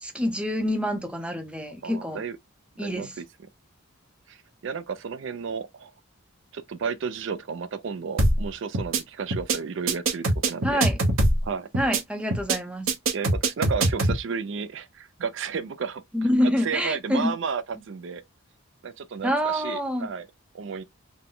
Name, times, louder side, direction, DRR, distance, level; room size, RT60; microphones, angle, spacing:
voice 1, 0.0-2.2 2.8-3.2 10.6-11.0 11.8-12.9 16.1-17.3 19.2-20.1, equal, 5° right, 0.6 m, -26 dB
voice 2, 1.8-2.4 2.8-3.2 4.3-4.4 4.6-5.9 6.5-10.8 11.4-11.7 13.1-16.0 16.4-18.2 18.8-20.3 20.5-20.8, right 6 dB, 60° right, 0.4 m, -32 dB
sound 1, 8.2-8.5 8.7-9.0 9.3-9.6 9.9-11.5 11.7-12.0 12.3-12.6 12.9-14.2, right 2 dB, 75° right, 0.9 m, -22 dB
3.9 x 2.1 x 3.7 m
head